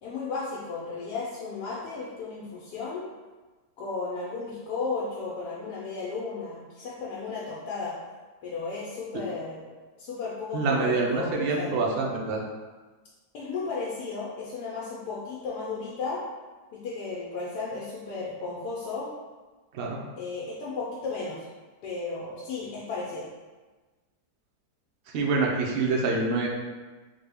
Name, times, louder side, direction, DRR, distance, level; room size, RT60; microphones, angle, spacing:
voice 1, 0.0-3.0 3.8-7.9 8.4-9.7 10.0-11.8 13.3-16.2 16.7-19.1 20.2-21.4 21.8-23.3, left 4 dB, 75° left, -6 dB, 1.1 m, -34 dB
voice 2, 10.5-12.4 19.7-20.0 25.1-26.5, right 3 dB, 85° right, -1 dB, 0.5 m, -26 dB
3.5 x 2.2 x 3.3 m, 1.3 s
omnidirectional pair, 1.8 m